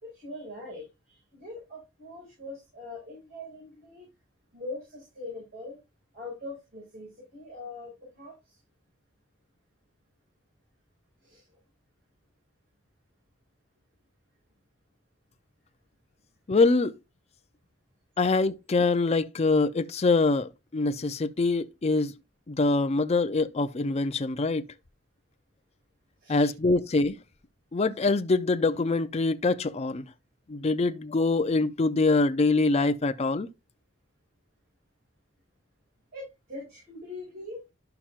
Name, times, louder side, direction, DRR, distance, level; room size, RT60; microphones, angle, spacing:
voice 1, 0.0-4.1 4.5-5.8 6.1-8.6 11.2-11.4 26.2-26.5 36.1-37.6, left 2 dB, 55° right, 5.3 m, -42 dB
voice 2, 16.5-16.9 18.2-22.1 22.5-24.7 26.3-27.2 27.7-30.0 30.5-33.5, left 3 dB, 35° left, 0.5 m, -24 dB
11.5 x 5.8 x 2.4 m
head